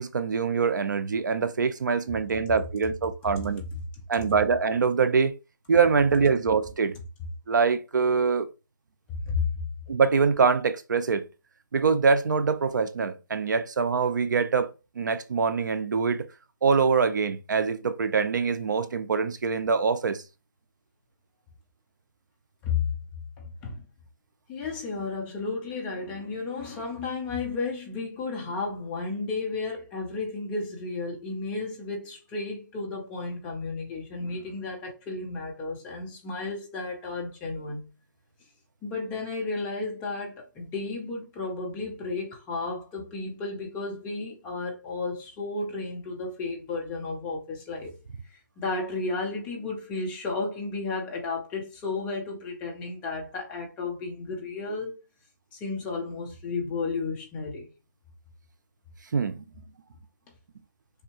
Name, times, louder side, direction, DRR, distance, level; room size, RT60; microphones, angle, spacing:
voice 1, 0.0-3.6 4.1-5.3 5.7-7.0 7.5-8.5 9.9-11.2 11.7-16.3 16.6-20.2 59.1-59.4, right 5 dB, 65° right, 0.5 m, -24 dB
voice 2, 23.4-23.8 24.5-37.9 38.8-47.9 48.3-54.9 55.5-57.7, left 3 dB, 10° left, 0.5 m, -33 dB
3.5 x 2.7 x 2.8 m
hypercardioid pair, 165°, 11 cm